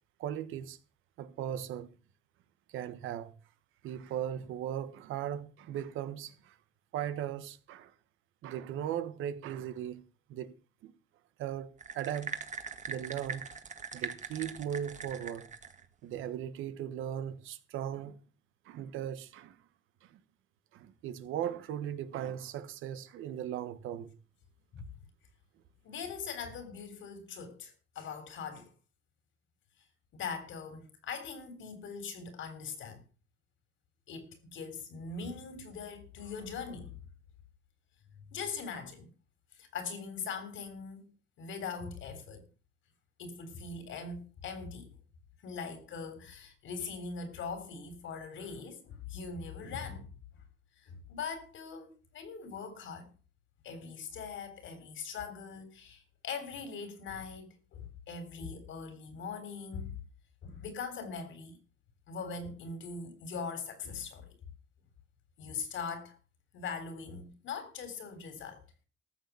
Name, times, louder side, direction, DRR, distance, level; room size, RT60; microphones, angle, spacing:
voice 1, 0.2-0.8 1.2-1.9 2.7-3.3 3.8-6.6 6.9-7.9 8.4-10.0 10.3-10.5 10.8-10.9 11.4-12.4 12.9-13.5 13.9-15.5 16.0-18.2 18.6-19.6 20.0-20.2 20.7-24.2, right 10 dB, 90° right, 1.3 m, -38 dB
sound 1, 11.8-15.8, right 5 dB, 35° right, 1.7 m, -41 dB
voice 2, 25.8-28.7 30.1-33.0 34.1-37.0 38.3-39.1 39.5-41.1 41.4-42.5 43.2-44.9 45.4-50.1 50.8-53.1 53.6-59.9 60.4-61.6 62.1-64.3 65.4-66.2 66.5-68.6, left 5 dB, 75° left, 3.6 m, -41 dB
14.0 x 6.9 x 7.0 m
cardioid pair, 90°, 20 cm